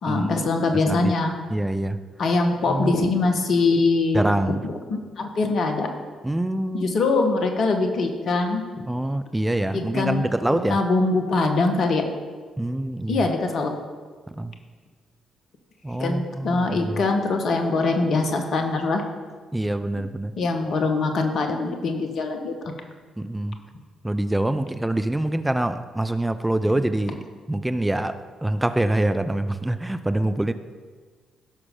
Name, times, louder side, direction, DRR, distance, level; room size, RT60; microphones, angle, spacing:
voice 1, 0.0-1.3 2.2-5.9 6.7-8.8 9.7-12.0 13.1-13.7 16.0-19.0 20.4-22.5, left 3 dB, 55° left, 5 dB, 1.4 m, -23 dB
voice 2, 1.5-2.0 2.7-2.9 4.1-4.6 6.2-6.9 8.9-10.8 12.6-13.3 14.4-14.5 15.8-17.0 19.5-20.3 23.2-23.6 24.0-27.2 27.5-28.1 28.4-30.5, right 1 dB, 10° right, 10 dB, 0.6 m, -25 dB
16.0 x 6.2 x 3.8 m, 1.5 s
hypercardioid pair, 40°, 0 cm